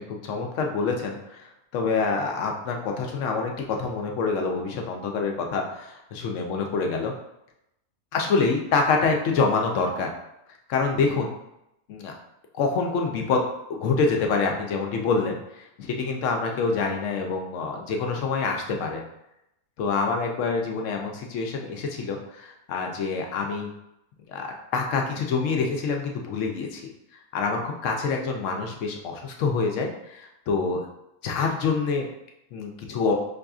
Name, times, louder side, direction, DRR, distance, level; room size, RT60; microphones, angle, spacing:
voice 1, 0.0-7.1 8.1-10.1 10.7-11.3 11.9-12.1 12.5-13.4 13.7-19.0 19.8-23.7 24.3-26.8 27.3-30.9 31.2-32.1 32.5-33.1, left 4 dB, 65° left, 2 dB, 0.8 m, -26 dB
5.3 x 2.6 x 2.3 m, 0.84 s
omnidirectional pair, 1.7 m